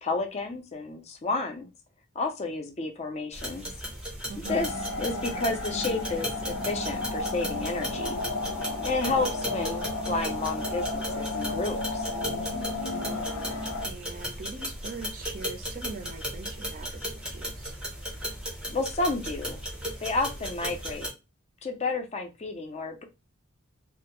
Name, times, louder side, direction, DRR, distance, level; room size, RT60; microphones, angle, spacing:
voice 1, 0.0-1.7 2.2-3.7 4.5-4.7 5.0-8.2 8.8-12.0 18.7-19.6 20.0-21.1 21.6-23.0, left 3 dB, 30° left, 0.4 m, -31 dB
sound 1, 3.3-21.1, equal, 5° right, 0.7 m, -36 dB
voice 2, 4.2-4.6 9.1-9.3 12.8-13.6 13.8-17.7, right 4 dB, 40° right, 0.4 m, -42 dB
sound 2, 4.5-13.9, left 2 dB, 85° left, 0.6 m, -33 dB
2.2 x 2.0 x 2.9 m
head